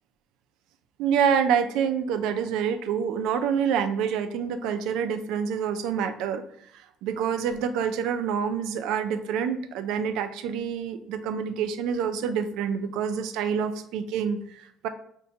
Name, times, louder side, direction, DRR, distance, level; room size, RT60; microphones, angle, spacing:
voice 1, 1.0-6.4 6.7-14.9, right 7 dB, 85° right, 9 dB, 0.3 m, -27 dB
5.2 x 2.2 x 2.7 m, 0.70 s
cardioid pair, 140°, 0 cm